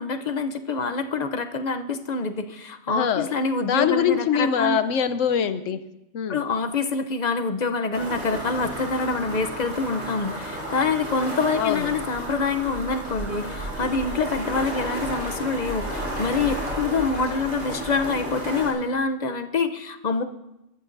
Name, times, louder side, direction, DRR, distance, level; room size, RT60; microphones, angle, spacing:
voice 1, 0.0-4.8 6.3-20.2, left 4 dB, 40° left, 8 dB, 0.7 m, -26 dB
voice 2, 2.9-3.3 3.6-5.8 6.1-6.4 11.6-11.9, left 8 dB, 80° left, 12 dB, 1.1 m, -23 dB
sound 1, 7.9-18.7, equal, 90° right, 4.8 m, -32 dB
sound 2, 8.0-10.2 10.5-16.7, equal, 45° right, 4.3 m, -48 dB
23.5 x 13.5 x 2.6 m, 0.90 s
omnidirectional pair, 1.3 m